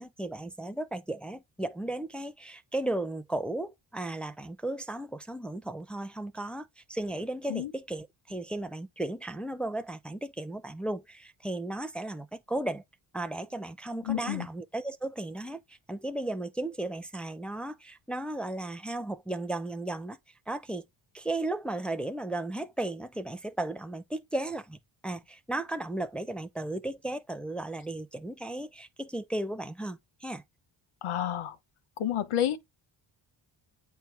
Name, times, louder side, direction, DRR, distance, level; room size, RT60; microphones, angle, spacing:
voice 1, 0.0-12.8 13.1-20.2 20.5-20.8 21.1-24.8 25.0-30.4, right 2 dB, ahead, 0.5 m, -35 dB
voice 2, 14.0-14.5 31.0-31.6 32.0-32.6, left 11 dB, 75° left, 1.1 m, -30 dB
9.0 x 4.4 x 3.4 m
wide cardioid pair, 135°, 50 cm